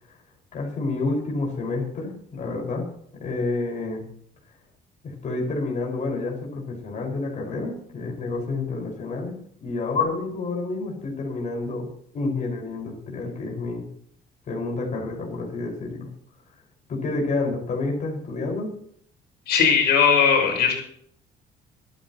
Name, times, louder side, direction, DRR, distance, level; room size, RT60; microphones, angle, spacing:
voice 1, 0.5-2.8 3.2-4.0 5.0-9.3 9.6-11.9 12.1-13.8 14.5-16.1 16.9-18.7, left 3 dB, 45° left, 0 dB, 5.4 m, -29 dB
voice 2, 19.5-20.8, left 6 dB, 80° left, 1 dB, 5.8 m, -18 dB
25.0 x 9.8 x 3.1 m, 0.65 s
cardioid pair, 110°, 17 cm